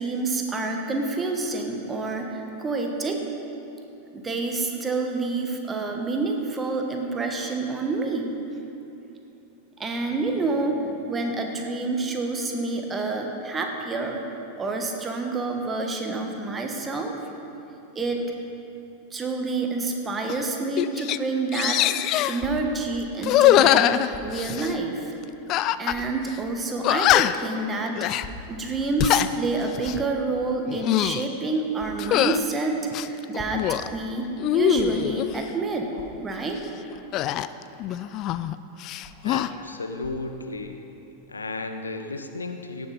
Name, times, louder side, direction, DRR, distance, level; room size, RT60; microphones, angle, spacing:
voice 1, 0.0-3.2 4.1-8.3 9.8-14.2 14.6-17.1 17.9-18.3 19.1-25.1 25.8-35.9 36.2-36.6, right 3 dB, 15° right, 3 dB, 1.4 m, -28 dB
sound 1, 20.3-20.4 20.8-21.2 21.5-22.4 23.2-24.7 25.5-26.0 26.3-26.4 26.8-27.5 28.0-28.3 28.8-29.3 29.7-30.0 30.6-31.2 32.0-32.4 32.9-33.9 34.4-35.3 37.1-38.5 38.8-39.5, left 12 dB, 35° left, 0.3 m, -22 dB
sound 2, 22.3-22.5 24.1-24.3 25.1-25.2 25.8-26.0 27.0-27.2 28.2-28.3 28.6-28.8 29.8-30.1 31.7-31.9 33.1-33.6 34.7-34.9 35.9-36.1 36.9-37.1 38.0-38.2 39.0-39.3 40.0-40.2, left 4 dB, 20° left, 1.4 m, -44 dB
voice 2, 39.2-40.8 41.3-42.9, left 3 dB, 75° left, 7 dB, 0.7 m, -34 dB
17.0 x 7.0 x 5.3 m, 2.9 s
figure-of-eight pair, 90°, 0 cm